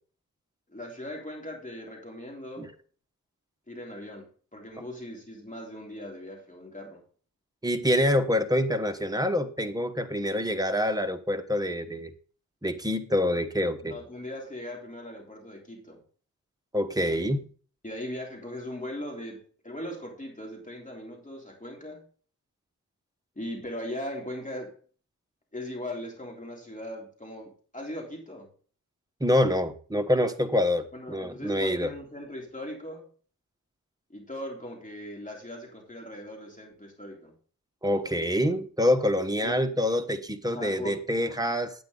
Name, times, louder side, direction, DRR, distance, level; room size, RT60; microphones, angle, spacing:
voice 1, 0.7-2.7 3.7-4.3 4.5-7.0 13.8-16.0 17.8-22.1 23.4-24.7 25.5-28.5 30.9-33.0 34.1-37.3 39.4-39.6 40.4-41.0 41.3-41.4, left 1 dB, 25° left, -1 dB, 3.3 m, -39 dB
voice 2, 7.6-12.1 12.6-13.9 16.7-17.5 29.2-31.9 37.8-41.7, left 1 dB, 10° right, 6 dB, 1.3 m, -26 dB
9.0 x 8.9 x 4.0 m, 0.41 s
wide cardioid pair, 70°, 33 cm